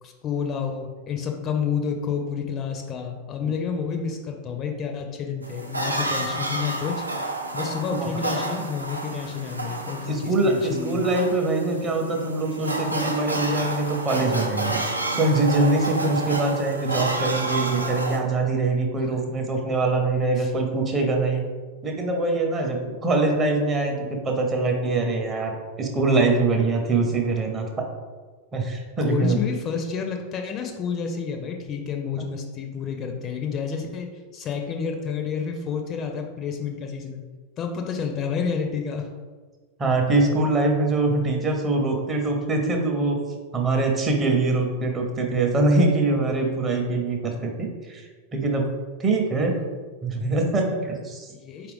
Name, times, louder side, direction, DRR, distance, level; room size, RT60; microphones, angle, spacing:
voice 1, 0.0-7.0 7.5-11.0 19.1-19.2 20.4-20.5 29.0-37.2 37.6-39.1 49.4-49.7 51.3-51.7, left 6 dB, 30° left, 4 dB, 0.4 m, -30 dB
sound 1, 5.4-18.2, right 2 dB, 85° right, 0.4 m, -30 dB
voice 2, 10.0-21.4 21.8-27.7 28.5-29.4 39.8-43.2 43.5-48.1 48.3-48.7 49.0-49.7 50.0-51.3, right 2 dB, 20° right, 1 dB, 0.6 m, -23 dB
4.4 x 2.5 x 3.4 m, 1.4 s
figure-of-eight pair, 90°, 0 cm